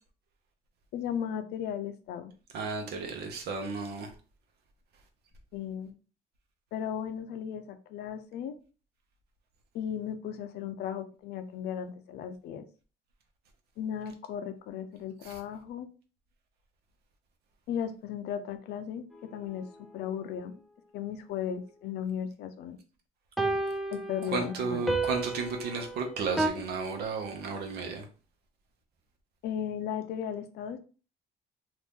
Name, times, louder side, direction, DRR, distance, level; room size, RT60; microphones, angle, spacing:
voice 1, 0.9-2.3 5.5-5.9 6.7-8.5 9.7-12.6 13.8-15.9 17.7-20.6 20.9-22.8 23.9-24.9 29.4-30.8, left 8 dB, 75° left, 0.5 m, -36 dB
voice 2, 2.5-4.1 15.2-15.4 24.2-28.1, right 4 dB, 70° right, 0.8 m, -33 dB
sound 1, 19.1-19.2 23.4-26.5, right 2 dB, ahead, 0.5 m, -32 dB
2.8 x 2.5 x 3.5 m
cardioid pair, 110°, 17 cm